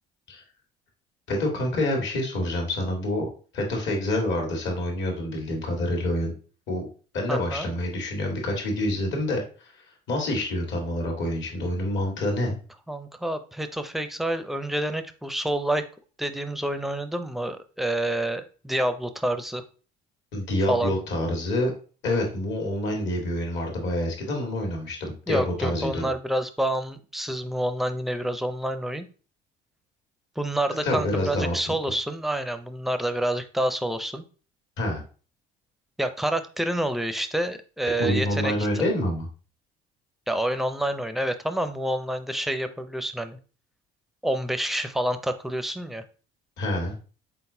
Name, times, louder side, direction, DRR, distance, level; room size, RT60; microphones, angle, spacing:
voice 1, 1.3-6.3 6.7-6.9 7.1-9.4 10.1-12.6 20.3-21.7 22.0-26.1 30.8-31.7 34.8-35.0 38.0-39.2 46.6-46.9, left 1 dB, 65° left, 1 dB, 1.5 m, -27 dB
voice 2, 7.3-7.7 12.9-15.9 16.2-19.6 20.7-20.9 25.3-29.1 30.4-34.2 36.0-38.8 40.3-43.4 44.2-46.0, right 1 dB, ahead, 9 dB, 0.5 m, -28 dB
4.0 x 3.9 x 2.6 m, 0.37 s
supercardioid pair, 75°, 21 cm